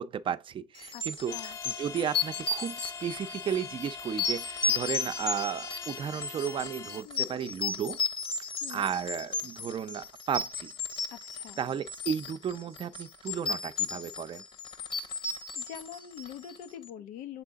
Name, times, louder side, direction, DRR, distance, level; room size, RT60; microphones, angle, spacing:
voice 1, 0.0-8.0 8.7-10.7 11.6-14.4, right 8 dB, 40° right, 0.6 m, -34 dB
sound 1, 0.8-16.6, left 4 dB, 40° left, 1.0 m, -34 dB
sound 2, 1.3-7.0, left 6 dB, 25° left, 0.3 m, -43 dB
voice 2, 7.0-7.4 8.6-8.9 11.1-11.6 15.3-17.4, left 9 dB, 85° left, 0.9 m, -44 dB
7.5 x 3.8 x 3.6 m
cardioid pair, 110°, 13 cm